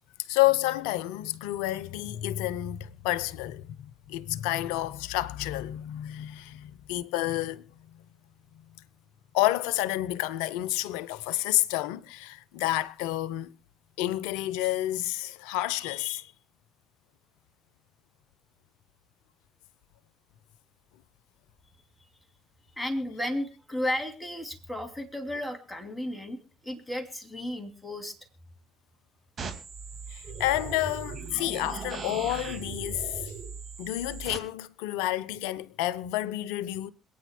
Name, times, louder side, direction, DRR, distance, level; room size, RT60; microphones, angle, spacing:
voice 1, 0.3-8.1 9.3-13.5 14.0-16.3 30.1-33.3 33.8-36.9, left 15 dB, 70° left, 0.6 m, -30 dB
voice 2, 22.8-26.4 26.6-28.2, left 1 dB, 5° left, 2.9 m, -33 dB
sound 1, 29.4-34.4, right 5 dB, 40° right, 2.1 m, -38 dB
26.5 x 9.3 x 2.2 m
figure-of-eight pair, 50°, 0 cm